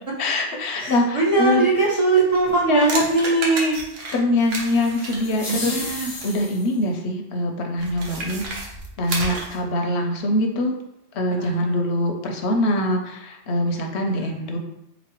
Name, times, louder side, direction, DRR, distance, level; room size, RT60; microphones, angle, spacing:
voice 1, 0.2-1.7 2.7-2.9 4.1-5.7 6.2-8.6 9.0-10.7 11.1-14.6, left 1 dB, 70° left, 3 dB, 0.8 m, -23 dB
voice 2, 0.8-3.8 5.5-6.1 11.4-11.8, right 3 dB, 45° right, -4 dB, 0.4 m, -21 dB
sound 1, 2.3-6.4 7.8-9.6, right 2 dB, 80° right, 1.2 m, -32 dB
sound 2, 4.7-6.8, left 3 dB, 40° left, 0.6 m, -34 dB
4.0 x 3.0 x 2.9 m, 0.82 s
omnidirectional pair, 1.3 m